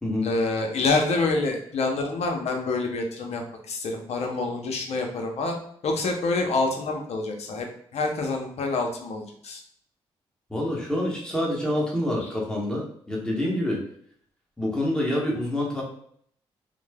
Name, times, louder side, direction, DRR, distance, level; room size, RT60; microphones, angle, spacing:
voice 1, 0.2-5.6 5.8-7.7 7.9-9.6, left 3 dB, 60° left, 3 dB, 0.6 m, -27 dB
voice 2, 10.5-13.8 14.6-15.8, left 1 dB, 5° left, -3 dB, 1.1 m, -27 dB
3.0 x 2.0 x 2.2 m, 0.65 s
hypercardioid pair, 45°, 12 cm